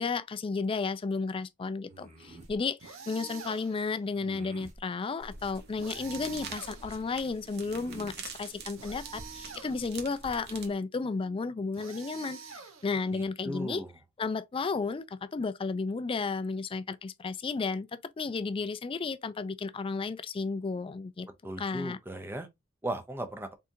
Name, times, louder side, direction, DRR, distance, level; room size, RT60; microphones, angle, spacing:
voice 1, 0.0-13.8 14.2-17.9 18.2-21.3 21.6-22.0, left 4 dB, 25° left, 0.3 m, -33 dB
sound 1, 1.9-2.6 4.2-4.8 5.9-6.7 7.6-8.2, right 3 dB, 35° right, 1.2 m, -48 dB
sound 2, 2.8-3.9 5.8-7.2 8.8-10.1 11.7-13.2, right 6 dB, 75° right, 1.1 m, -47 dB
sound 3, 5.2-10.7, right 4 dB, 55° right, 1.1 m, -45 dB
voice 2, 13.1-13.9 21.4-22.5 22.8-23.5, right 1 dB, 10° right, 0.7 m, -37 dB
4.2 x 3.6 x 2.7 m
head